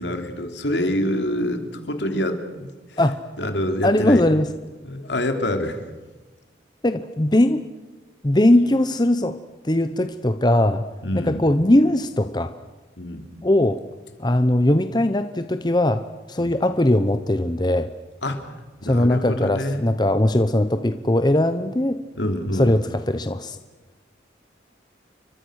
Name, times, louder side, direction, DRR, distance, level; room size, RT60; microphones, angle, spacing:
voice 1, 0.0-1.6 1.9-3.0 3.4-4.3 4.8-5.8 11.0-11.4 13.0-13.3 16.4-16.6 18.2-18.5 18.8-19.9 22.1-22.8, left 1 dB, 70° left, 6 dB, 3.2 m, -26 dB
voice 2, 3.8-4.5 6.8-7.6 8.2-9.4 9.6-10.8 11.1-12.5 13.4-13.8 14.2-16.0 16.3-17.9 18.9-22.0 22.6-23.6, left 1 dB, 20° left, 10 dB, 0.8 m, -19 dB
30.0 x 24.5 x 6.4 m, 1.2 s
head